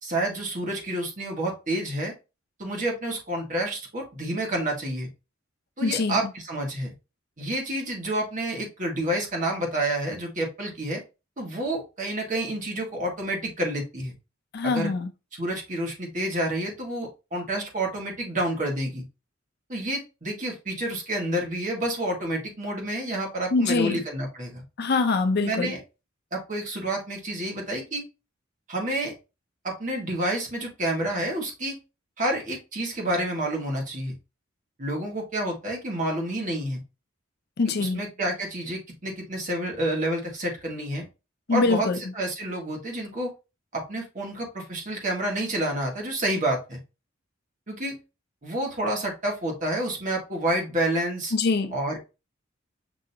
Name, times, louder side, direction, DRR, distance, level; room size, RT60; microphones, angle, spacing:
voice 1, 0.0-2.1 2.6-5.1 5.8-6.9 7.4-11.0 11.4-14.1 14.6-14.9 15.4-19.0 19.7-24.6 25.4-25.8 26.3-28.0 28.7-29.1 29.6-31.8 32.2-34.1 34.8-36.8 37.8-41.1 41.5-41.9 42.1-43.3 43.7-46.8 47.7-48.0 48.4-51.3 51.7-52.0, right 1 dB, 40° right, 1.5 m, -29 dB
voice 2, 5.8-6.2 14.5-15.1 23.5-24.0 24.8-25.7 37.6-38.0 41.5-42.0 51.3-51.8, left 3 dB, 55° left, 0.6 m, -24 dB
6.2 x 2.8 x 2.7 m
head